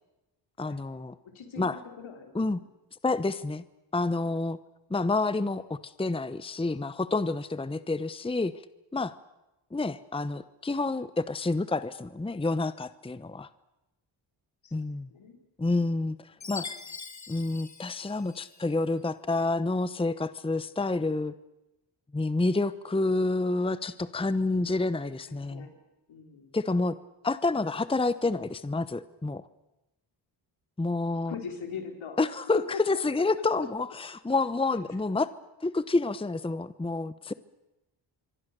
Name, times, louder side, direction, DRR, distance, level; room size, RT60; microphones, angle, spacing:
voice 1, 0.6-1.2 1.6-1.8 2.3-2.6 3.0-3.6 3.9-4.6 4.9-8.5 8.9-9.1 9.7-13.5 14.7-15.1 15.6-16.2 16.5-16.7 17.3-21.3 22.1-25.7 26.5-27.0 27.2-29.4 30.8-31.3 32.2-32.6 32.9-35.3 35.6-37.3, left 3 dB, 10° left, 14 dB, 0.9 m, -28 dB
voice 2, 1.2-2.7 14.6-15.4 16.4-16.8 25.2-25.8 26.1-26.5 31.3-33.3 33.6-33.7 34.7-34.8 35.2-35.3, left 6 dB, 75° left, 4 dB, 4.5 m, -42 dB
Chime, 16.4-18.7, left 5 dB, 35° left, 1.6 m, -43 dB
26.0 x 24.0 x 6.8 m, 0.97 s
cardioid pair, 60°, 47 cm